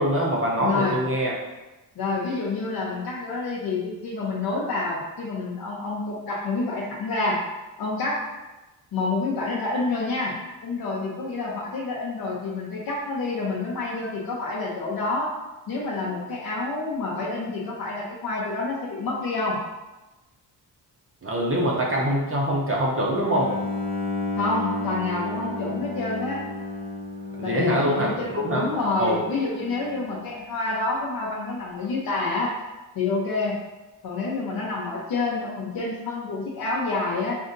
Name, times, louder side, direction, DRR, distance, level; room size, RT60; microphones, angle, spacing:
voice 1, 0.0-1.3 21.2-23.5 27.4-28.6 29.0-29.2, right 1 dB, 35° right, -3 dB, 0.6 m, -24 dB
voice 2, 0.6-1.0 2.0-7.4 7.8-8.2 8.9-10.3 10.6-15.3 15.7-19.6 24.4-26.4 27.4-32.5 32.9-33.5 34.0-37.4, left 3 dB, 65° left, -5 dB, 0.7 m, -28 dB
Bowed string instrument, 23.2-30.2, left 2 dB, 20° left, 0.9 m, -33 dB
5.2 x 2.5 x 2.5 m, 1.1 s
wide cardioid pair, 125°, 41 cm